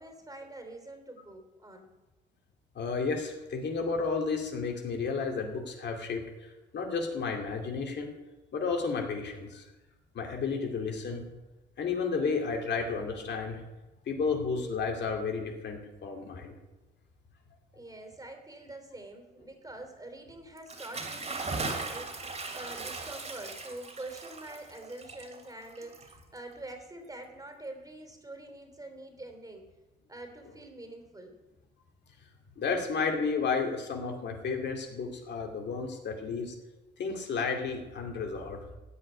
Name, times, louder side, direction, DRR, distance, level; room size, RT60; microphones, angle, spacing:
voice 1, 0.0-1.9 17.7-29.7 30.1-31.4, right 2 dB, 20° right, 4 dB, 3.0 m, -45 dB
voice 2, 2.8-8.1 8.5-9.6 10.1-11.3 11.8-13.6 14.1-16.6 32.6-36.5 37.0-38.6, left 4 dB, 60° left, 2 dB, 2.5 m, -32 dB
Bathtub (filling or washing) / Splash splatter, 20.6-26.5, right 3 dB, 35° right, 2.7 m, -38 dB
15.5 x 5.5 x 9.5 m, 1.1 s
cardioid pair, 90°, 20 cm